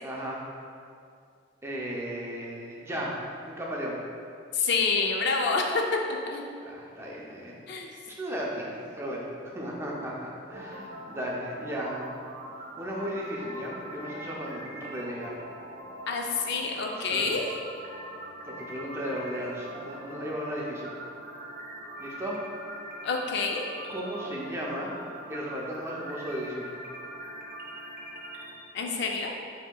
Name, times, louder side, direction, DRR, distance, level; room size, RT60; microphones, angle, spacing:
voice 1, 0.0-0.4 1.6-3.1 3.5-4.0 6.6-7.6 8.1-12.1 12.8-15.4 16.9-17.3 18.4-21.0 22.0-22.4 23.9-24.9 25.3-26.8, equal, 15° right, -4 dB, 0.5 m, -35 dB
voice 2, 4.5-5.8 6.3-6.4 7.7-8.0 16.1-17.4 23.0-23.6 28.7-29.3, left 4 dB, 60° left, 1 dB, 0.4 m, -27 dB
sound 1, 10.5-28.5, right 1 dB, 50° right, 0.7 m, -42 dB
7.8 x 2.8 x 2.2 m, 2.4 s
head